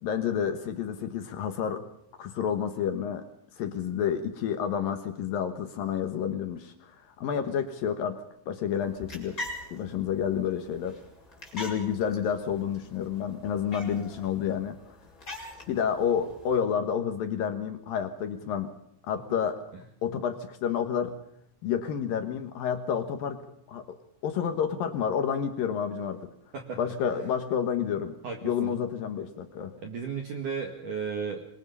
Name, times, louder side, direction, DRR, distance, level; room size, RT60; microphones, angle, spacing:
voice 1, 0.0-1.8 2.2-3.2 3.6-9.4 9.7-11.0 11.5-14.8 15.7-18.7 19.1-19.6 20.0-21.1 21.6-23.4 23.7-24.0 24.2-26.3 26.8-28.1 28.4-29.7, left 8 dB, 70° left, 8 dB, 2.3 m, -29 dB
sound 1, 8.8-16.6, left 1 dB, 15° left, 5.3 m, -44 dB
voice 2, 26.5-26.9 28.2-28.7 29.8-31.4, right 6 dB, 55° right, 3 dB, 2.7 m, -34 dB
26.5 x 23.0 x 5.5 m, 0.74 s
omnidirectional pair, 5.8 m